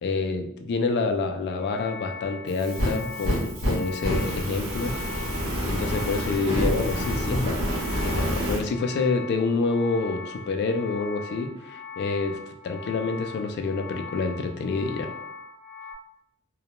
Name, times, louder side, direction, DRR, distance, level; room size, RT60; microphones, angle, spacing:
voice 1, 0.0-5.0 5.6-7.8 8.0-12.4 12.6-15.1, left 4 dB, 50° left, 6 dB, 0.3 m, -27 dB
sound 1, 1.5-15.9, left 5 dB, 5° right, 0.9 m, -40 dB
Fire, 2.5-8.6, equal, 70° right, 0.8 m, -28 dB
2.2 x 2.1 x 2.8 m, 0.75 s
head